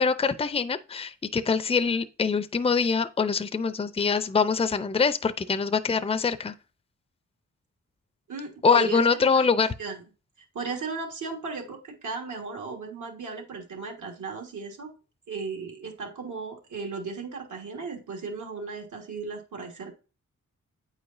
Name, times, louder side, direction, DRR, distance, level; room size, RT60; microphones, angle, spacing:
voice 1, 0.0-6.5 8.6-9.7, left 5 dB, 20° left, 0.5 m, -24 dB
voice 2, 8.3-9.5 9.8-10.0 10.5-14.9 15.3-19.9, right 4 dB, 75° right, 1.6 m, -36 dB
8.5 x 4.9 x 2.6 m
cardioid pair, 60°, 31 cm